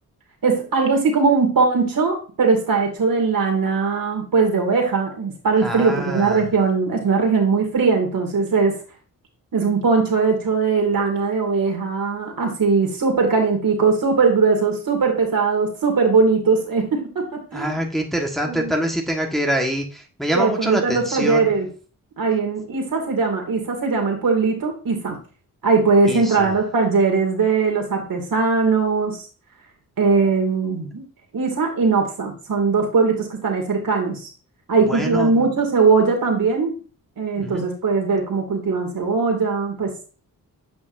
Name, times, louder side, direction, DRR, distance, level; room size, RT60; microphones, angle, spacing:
voice 1, 0.4-8.8 9.5-17.8 18.4-18.7 20.3-21.7 22.2-25.2 25.6-29.2 30.0-31.0 31.3-34.3 34.7-36.8 37.2-40.1, right 4 dB, 70° right, 2 dB, 2.2 m, -20 dB
voice 2, 5.6-6.4 17.5-21.5 26.1-26.5 34.9-35.4 37.4-37.6, right 1 dB, ahead, 1 dB, 1.4 m, -25 dB
8.4 x 5.2 x 2.6 m, 0.37 s
cardioid pair, 65°, 36 cm